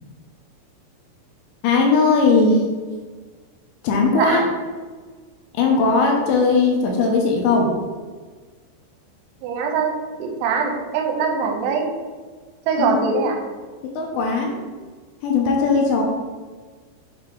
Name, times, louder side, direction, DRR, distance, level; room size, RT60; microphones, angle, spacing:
voice 1, 1.6-2.6 3.8-4.5 5.5-7.7 12.8-13.4 13.9-14.6 15.2-16.0, left 4 dB, 80° left, 0 dB, 2.8 m, -18 dB
voice 2, 9.4-9.9 10.2-11.9 12.7-13.4, right 5 dB, 85° right, 2 dB, 3.0 m, -22 dB
7.7 x 3.5 x 3.7 m, 1.5 s
omnidirectional pair, 5.3 m